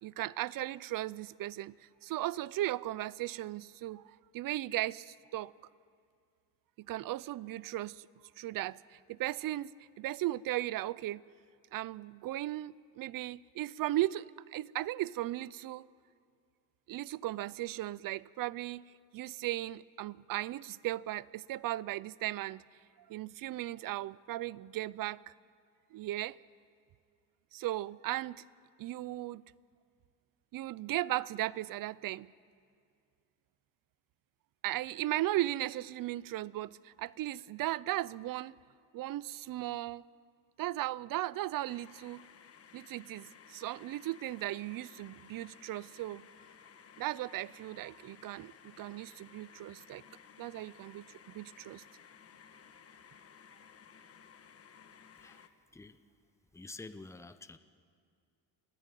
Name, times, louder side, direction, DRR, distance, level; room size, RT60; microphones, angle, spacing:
voice 1, 0.0-1.7 2.0-4.0 4.3-5.5 6.9-8.1 8.4-11.2 11.7-14.3 14.5-15.9 16.9-18.8 19.1-22.6 23.1-25.3 25.9-26.4 27.5-28.4 28.8-29.4 30.5-32.3 34.6-38.6 38.9-40.0 40.6-42.2 42.7-46.3 47.0-50.0 50.4-51.8, right 15 dB, 50° right, 0.5 m, -36 dB
sound 1, 41.6-55.5, left 7 dB, 35° left, 1.3 m, -57 dB
voice 2, 55.1-55.5 55.7-56.0 56.5-57.6, left 3 dB, 5° left, 0.7 m, -48 dB
27.0 x 17.0 x 9.2 m
cardioid pair, 140°, 43 cm